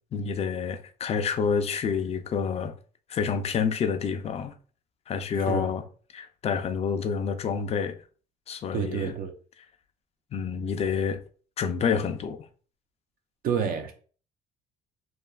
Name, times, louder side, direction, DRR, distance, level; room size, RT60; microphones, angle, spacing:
voice 1, 0.1-2.7 3.1-4.5 5.1-5.8 6.1-8.0 8.5-9.1 10.3-11.2 11.6-12.4, left 6 dB, 40° left, 0.4 m, -28 dB
voice 2, 5.4-5.7 8.7-9.3 13.4-13.9, right 7 dB, 60° right, 0.4 m, -29 dB
3.2 x 2.2 x 2.3 m
cardioid pair, 110°, 17 cm